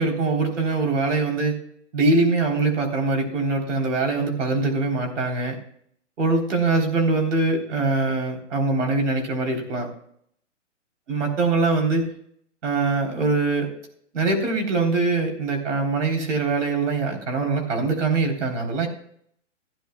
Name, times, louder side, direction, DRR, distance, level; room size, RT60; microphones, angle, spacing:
voice 1, 0.0-1.6 1.9-5.6 6.2-9.9 11.1-12.1 12.6-13.7 14.1-18.9, right 3 dB, 70° right, 2 dB, 3.7 m, -23 dB
15.5 x 10.5 x 2.3 m, 0.67 s
hypercardioid pair, 175°, 38 cm